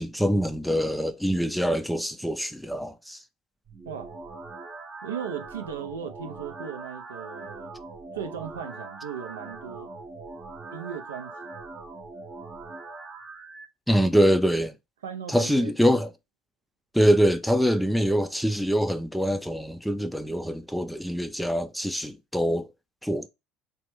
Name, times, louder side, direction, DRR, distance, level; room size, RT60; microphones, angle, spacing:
voice 1, 0.0-3.2 13.9-14.7 15.3-16.1 16.9-22.7 23.0-23.3, equal, ahead, 0.4 m, -24 dB
sound 1, 3.7-13.7, right 3 dB, 35° right, 0.6 m, -41 dB
voice 2, 3.9-4.2 5.0-7.7 8.1-9.9 10.7-11.6 15.0-16.0, right 8 dB, 85° right, 0.4 m, -37 dB
3.1 x 2.2 x 3.0 m
hypercardioid pair, 70°, 0 cm